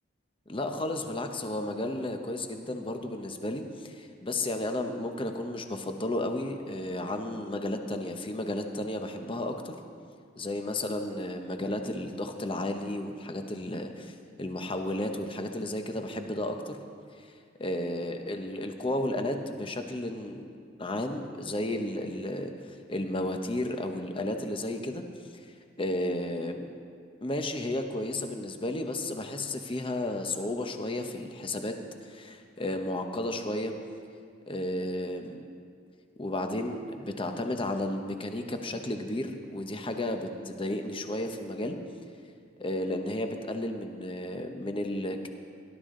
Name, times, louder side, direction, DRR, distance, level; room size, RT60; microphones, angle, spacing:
voice 1, 0.5-9.8 10.4-16.8 17.2-17.3 17.6-20.5 20.8-25.0 25.8-26.7 27.2-31.7 32.0-33.7 34.5-35.4 36.2-41.8 42.6-45.3, left 1 dB, 25° left, 5 dB, 0.9 m, -33 dB
18.0 x 12.0 x 3.8 m, 2.2 s
head